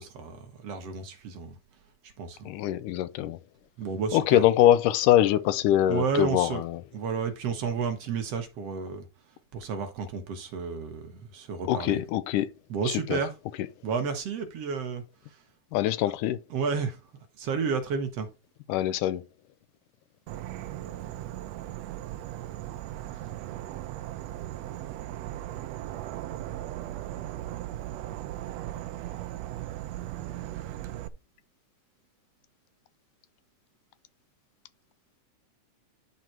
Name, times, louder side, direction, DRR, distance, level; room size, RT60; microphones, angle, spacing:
voice 1, 0.0-1.6 2.2-2.5 3.8-4.5 5.9-6.6 6.9-9.0 9.5-12.0 12.7-13.3 13.8-15.0 16.0-16.1 16.5-17.0 17.4-18.3, right 5 dB, 60° right, 1.9 m, -31 dB
voice 2, 2.5-3.4 4.1-6.8 11.7-12.5 13.1-13.2 15.7-16.4 18.7-19.2, left 12 dB, 85° left, 2.3 m, -23 dB
Insect / Frog, 20.3-31.1, right 13 dB, 80° right, 1.5 m, -37 dB
11.0 x 4.1 x 4.3 m
omnidirectional pair, 3.6 m